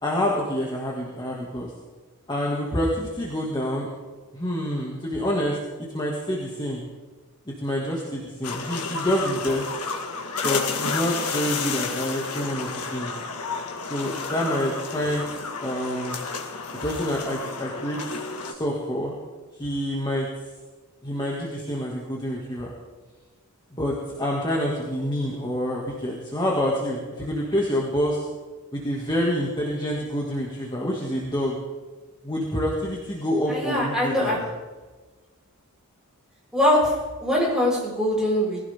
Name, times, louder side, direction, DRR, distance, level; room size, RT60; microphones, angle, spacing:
voice 1, 0.0-1.7 2.3-3.9 4.3-5.6 5.9-6.8 7.5-9.7 10.4-13.1 13.8-15.2 15.6-16.2 16.8-18.2 18.4-19.1 19.6-20.3 21.0-22.7 23.7-28.2 28.7-31.6 32.2-34.4, equal, 20° left, -4 dB, 2.3 m, -27 dB
sound 1, 8.4-18.5, left 4 dB, 90° left, 1.9 m, -31 dB
voice 2, 33.5-34.4 36.5-38.6, left 1 dB, 5° right, -6 dB, 6.8 m, -22 dB
21.0 x 16.0 x 3.7 m, 1.3 s
head